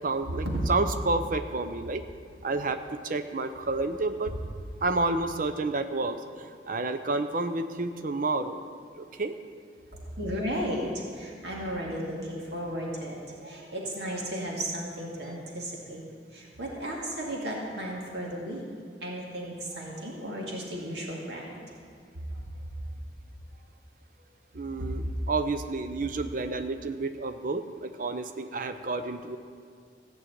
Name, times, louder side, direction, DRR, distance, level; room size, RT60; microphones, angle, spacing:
voice 1, 0.0-2.0 2.4-4.3 4.8-8.6 9.0-9.4 24.5-29.4, right 3 dB, 50° right, 8 dB, 0.6 m, -30 dB
voice 2, 10.2-16.1 16.3-18.6 19.0-21.7 22.3-22.6 24.8-24.9, equal, 65° right, -3 dB, 2.3 m, -34 dB
15.0 x 6.2 x 8.6 m, 2.2 s
head